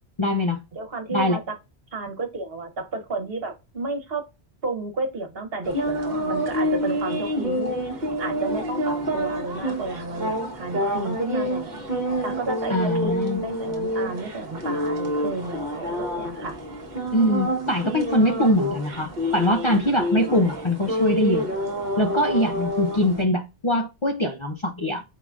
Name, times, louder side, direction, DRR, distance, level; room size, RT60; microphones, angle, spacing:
voice 1, 0.2-0.6 1.1-1.4 12.7-13.4 17.1-21.5 22.0-25.0, left 1 dB, 35° left, 0.6 m, -23 dB
voice 2, 0.7-1.6 1.9-4.3 4.6-11.8 12.2-13.1 13.4-16.6, right 3 dB, 65° right, 1.3 m, -32 dB
sound 1, 5.6-23.2, equal, 45° right, 1.1 m, -28 dB
4.8 x 3.7 x 2.4 m
omnidirectional pair, 1.1 m